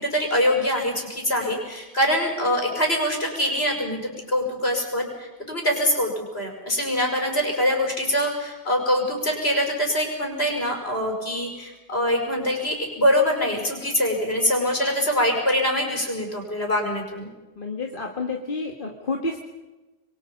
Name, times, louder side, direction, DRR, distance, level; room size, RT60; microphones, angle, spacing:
voice 1, 0.0-17.3, equal, 70° left, 1 dB, 5.9 m, -24 dB
voice 2, 17.6-19.5, left 3 dB, 55° left, 1 dB, 2.0 m, -30 dB
27.5 x 22.5 x 5.4 m, 1.1 s
omnidirectional pair, 1.1 m